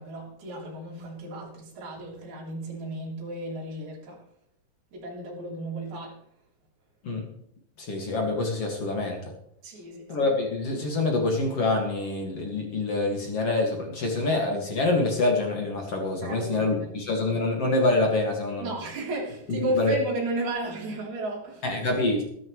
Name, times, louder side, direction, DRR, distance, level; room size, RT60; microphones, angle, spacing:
voice 1, 0.0-4.2 4.9-6.2 9.6-10.2 16.2-16.9 18.6-21.8, right 2 dB, 45° right, -4 dB, 4.3 m, -33 dB
voice 2, 7.8-9.2 10.1-18.7 19.5-20.0 21.6-22.2, left 2 dB, 45° left, 1 dB, 2.1 m, -26 dB
21.0 x 10.5 x 3.2 m, 0.72 s
omnidirectional pair, 5.3 m